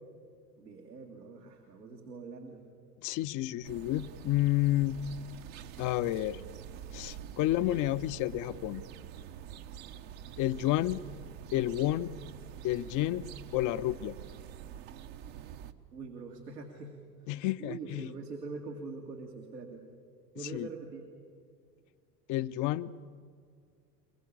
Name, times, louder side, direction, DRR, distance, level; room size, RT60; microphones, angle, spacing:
voice 1, 0.6-2.7 15.9-17.0 17.2-19.9 20.3-21.1, right 4 dB, 85° right, 0 dB, 2.4 m, -44 dB
voice 2, 3.0-5.0 5.8-6.4 6.9-8.8 10.4-11.0 11.5-12.1 12.6-13.3 13.5-14.2 17.3-18.1 20.5-20.7 22.3-22.9, left 15 dB, 40° left, 14 dB, 0.7 m, -30 dB
sound 1, 3.6-15.7, right 9 dB, 55° right, 1.2 m, -46 dB
23.5 x 22.0 x 8.6 m, 2.1 s
figure-of-eight pair, 80°, 48 cm